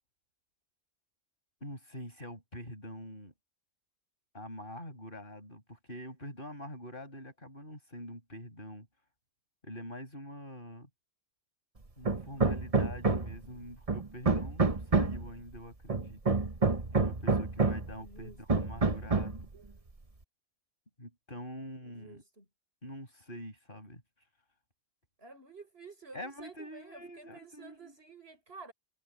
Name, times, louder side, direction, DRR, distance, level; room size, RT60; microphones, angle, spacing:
voice 1, 1.6-3.3 4.3-8.9 9.6-10.9 12.0-16.2 16.9-19.5 21.0-22.2 22.8-24.0 26.1-27.9, equal, 55° left, 6.8 m, -45 dB
Hammer, 12.0-13.4 13.9-15.3 15.9-17.9 18.5-19.4, right 4 dB, 35° right, 1.4 m, -28 dB
voice 2, 17.9-18.4 21.8-22.5 25.2-28.7, right 3 dB, 75° right, 7.6 m, -51 dB
omnidirectional pair, 1.1 m